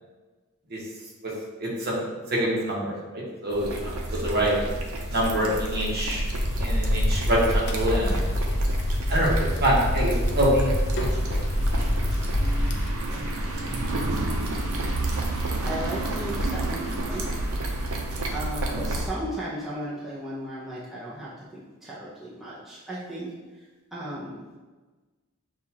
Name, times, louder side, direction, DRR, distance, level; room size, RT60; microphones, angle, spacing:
voice 1, 1.6-2.0 2.3-4.5 5.1-6.3 6.6-8.2 9.1-9.3 9.6-11.4, right 1 dB, 45° right, -5 dB, 1.1 m, -26 dB
sound 1, 3.5-19.1, right 1 dB, 75° right, 0.6 m, -30 dB
sound 2, 6.3-12.9, left 1 dB, 50° left, 0.5 m, -26 dB
voice 2, 14.1-14.4 15.6-17.3 18.3-23.3 23.9-24.5, right 1 dB, ahead, -9 dB, 0.6 m, -36 dB
6.4 x 2.4 x 2.8 m, 1.3 s
head